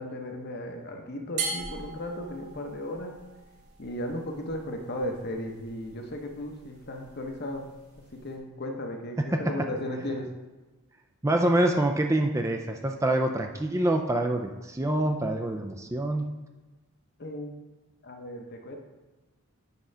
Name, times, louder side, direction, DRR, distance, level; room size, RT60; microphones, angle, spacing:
voice 1, 0.0-3.2 3.8-7.7 8.1-10.3 17.2-17.5 18.0-18.8, left 1 dB, 45° left, 3 dB, 0.9 m, -35 dB
sound 1, 1.4-8.4, right 4 dB, 85° right, 2.7 m, -41 dB
voice 2, 9.3-9.7 11.2-16.3, right 1 dB, 15° right, 4 dB, 0.4 m, -26 dB
8.4 x 3.8 x 5.5 m, 1.1 s
head